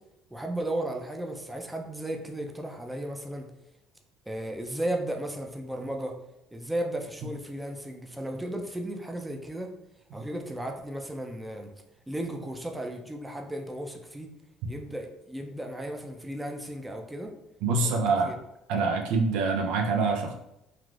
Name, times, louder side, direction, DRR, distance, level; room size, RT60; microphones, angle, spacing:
voice 1, 0.3-3.5 4.3-6.2 6.5-9.7 10.1-11.7 12.1-14.3 14.7-17.3 17.7-18.3, right 1 dB, 10° right, 3 dB, 0.5 m, -35 dB
voice 2, 17.6-18.3 18.7-20.3, right 4 dB, 80° right, 3 dB, 0.4 m, -25 dB
3.3 x 2.4 x 2.4 m, 0.85 s
supercardioid pair, 80°, 0 cm